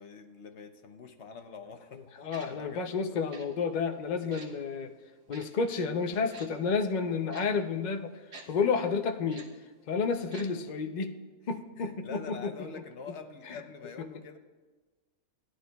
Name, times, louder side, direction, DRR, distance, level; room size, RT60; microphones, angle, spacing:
voice 1, 0.0-3.3 4.2-4.4 8.5-8.6 11.8-14.4, left 5 dB, 55° left, 7 dB, 0.9 m, -46 dB
voice 2, 1.9-4.9 5.3-8.2 8.5-9.4 9.9-11.1 11.5-12.5 13.5-13.6, left 5 dB, 85° left, 6 dB, 0.4 m, -31 dB
Tick-tock, 2.3-2.5 3.3-3.5 4.3-4.5 5.3-5.4 6.3-6.5 7.3-7.5 8.3-8.5 9.3-9.5 10.3-10.5 10.7-10.8, right 3 dB, 70° right, 1.8 m, -47 dB
17.0 x 11.5 x 2.3 m, 1.3 s
omnidirectional pair, 1.7 m